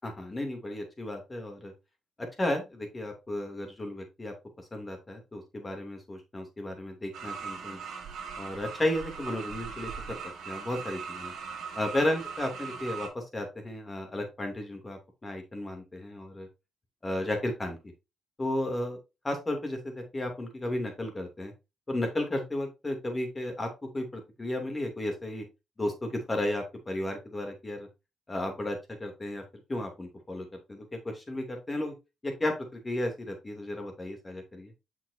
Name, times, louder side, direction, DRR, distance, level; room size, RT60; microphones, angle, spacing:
voice 1, 0.0-1.7 2.2-7.8 8.4-10.2 10.5-11.3 11.7-16.5 17.0-17.8 18.4-19.0 19.2-21.5 21.9-25.4 25.8-27.9 28.3-29.4 29.7-31.9 32.2-34.7, left 1 dB, 25° left, 4 dB, 2.7 m, -34 dB
sound 1, 7.1-13.1, right 6 dB, 75° right, 2.2 m, -39 dB
7.4 x 6.2 x 2.7 m, 0.25 s
cardioid pair, 90°, 0 cm